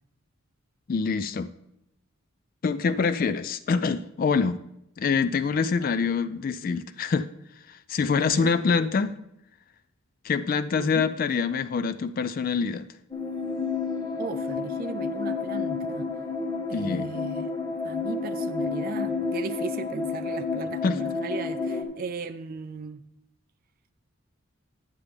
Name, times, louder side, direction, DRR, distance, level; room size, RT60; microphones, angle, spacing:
voice 1, 0.9-1.5 2.6-4.6 5.0-7.3 7.7-9.2 10.2-12.9 16.7-17.1 20.8-21.0, left 5 dB, 40° left, 13 dB, 0.3 m, -25 dB
voice 2, 8.2-8.5 10.8-11.1 14.2-16.1 16.7-17.5 17.8-23.0, right 4 dB, 45° right, 8 dB, 0.4 m, -37 dB
sound 1, 13.1-21.8, left 4 dB, 20° left, 1.3 m, -30 dB
9.8 x 9.6 x 3.4 m, 0.81 s
head